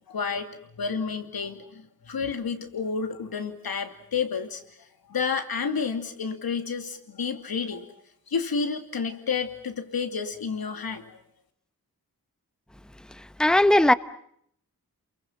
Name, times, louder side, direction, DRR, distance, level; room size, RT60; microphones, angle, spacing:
voice 1, 0.1-0.5 0.8-4.6 5.1-7.9 8.3-11.2, left 5 dB, 80° left, 2.7 m, -30 dB
voice 2, 13.4-13.9, left 1 dB, ahead, 1.0 m, -17 dB
29.0 x 23.0 x 7.4 m
cardioid pair, 55°, 36 cm